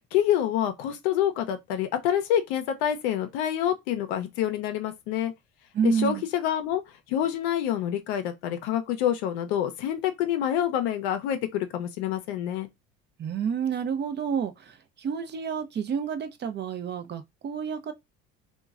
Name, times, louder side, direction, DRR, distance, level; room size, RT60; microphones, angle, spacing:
voice 1, 0.0-5.3 5.8-6.8 7.1-12.7, left 10 dB, 85° left, 0.6 m, -27 dB
voice 2, 5.7-6.2 13.2-17.9, right 7 dB, 35° right, 0.5 m, -29 dB
3.0 x 2.3 x 2.3 m
supercardioid pair, 90°, 31 cm